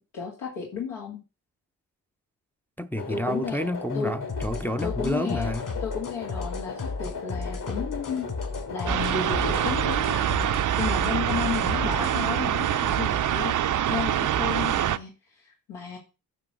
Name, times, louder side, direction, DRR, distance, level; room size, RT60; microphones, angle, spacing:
voice 1, 0.1-1.2 3.1-3.6 3.9-4.2 4.8-5.6 5.8-8.3 8.7-13.5 13.9-16.0, left 6 dB, 90° left, 1.9 m, -33 dB
voice 2, 2.8-5.6, equal, 5° left, 0.5 m, -29 dB
sound 1, 3.0-9.8, left 5 dB, 60° left, 2.7 m, -37 dB
sound 2, 4.3-12.2, left 3 dB, 45° left, 2.3 m, -34 dB
sound 3, 8.9-15.0, right 11 dB, 45° right, 0.5 m, -25 dB
9.1 x 3.3 x 6.1 m
cardioid pair, 65°, 43 cm